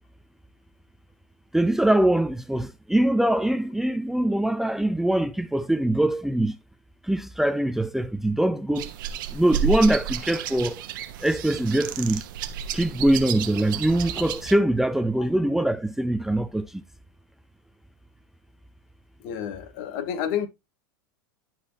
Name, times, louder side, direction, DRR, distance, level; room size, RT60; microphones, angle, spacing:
voice 1, 1.5-6.6 7.0-8.9 9.3-10.8 11.2-12.2 12.7-16.8, right 1 dB, 5° right, 0.5 m, -23 dB
sound 1, 8.7-14.5, right 8 dB, 70° right, 1.1 m, -31 dB
voice 2, 19.2-20.5, left 9 dB, 60° left, 1.8 m, -30 dB
11.0 x 4.4 x 2.8 m
hypercardioid pair, 105°, 11 cm